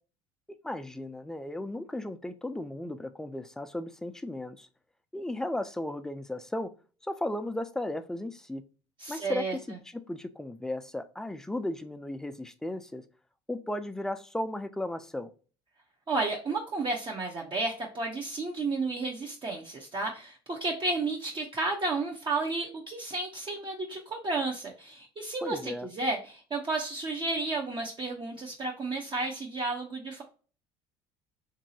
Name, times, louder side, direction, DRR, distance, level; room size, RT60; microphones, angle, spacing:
voice 1, 0.6-4.7 5.1-6.7 7.0-8.6 9.1-9.6 9.9-13.0 13.5-15.3 25.4-25.9, left 1 dB, 5° left, 10 dB, 0.4 m, -35 dB
voice 2, 9.0-9.6 16.1-30.2, right 3 dB, 35° right, -1 dB, 0.7 m, -32 dB
2.9 x 2.6 x 2.7 m, 0.37 s
hypercardioid pair, 75°, 15 cm